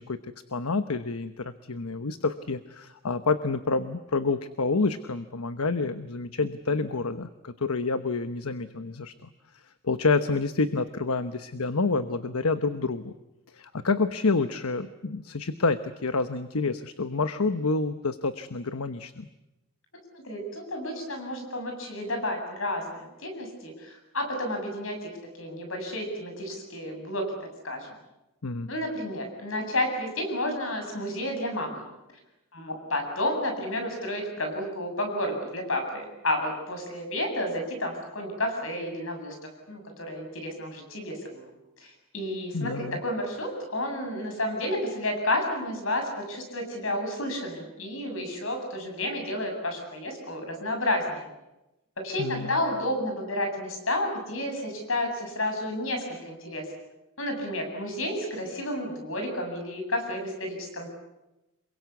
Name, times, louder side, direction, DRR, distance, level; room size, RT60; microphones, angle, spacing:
voice 1, 0.0-9.3 9.8-13.1 13.5-19.3 28.4-28.7 42.5-43.0 52.2-52.6, left 3 dB, 85° left, 11 dB, 1.1 m, -28 dB
voice 2, 20.2-25.1 25.4-27.3 27.6-27.9 28.7-31.8 32.5-41.5 41.8-51.3 52.0-56.7 57.2-60.9, left 1 dB, 65° left, 4 dB, 8.0 m, -31 dB
27.5 x 23.0 x 8.3 m, 0.97 s
head